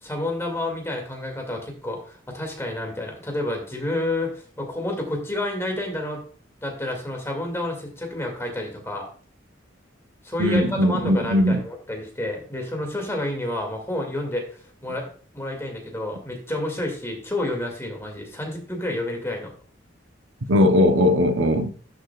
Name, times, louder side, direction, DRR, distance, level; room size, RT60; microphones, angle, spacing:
voice 1, 0.0-6.2 6.6-9.1 10.2-14.4 14.8-15.0 15.3-19.5, left 1 dB, 15° left, 2.2 m, -29 dB
voice 2, 10.4-11.6 20.5-21.7, left 1 dB, 70° right, 0.8 m, -19 dB
11.5 x 6.2 x 2.3 m
head